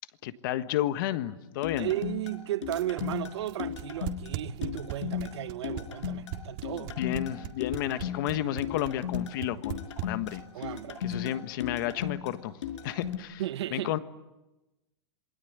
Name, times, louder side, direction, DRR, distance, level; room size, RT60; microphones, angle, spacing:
voice 1, 0.2-1.9 6.8-10.7 11.0-13.4 13.7-14.0, left 12 dB, 45° left, 1.4 m, -32 dB
sound 1, 1.6-13.2, left 8 dB, 85° left, 5.3 m, -36 dB
voice 2, 1.8-6.9 10.5-11.3 13.4-13.9, right 13 dB, 70° right, 1.1 m, -35 dB
sound 2, 2.7-10.6, right 16 dB, 45° right, 2.0 m, -37 dB
27.5 x 21.5 x 9.5 m
supercardioid pair, 165°, 15 cm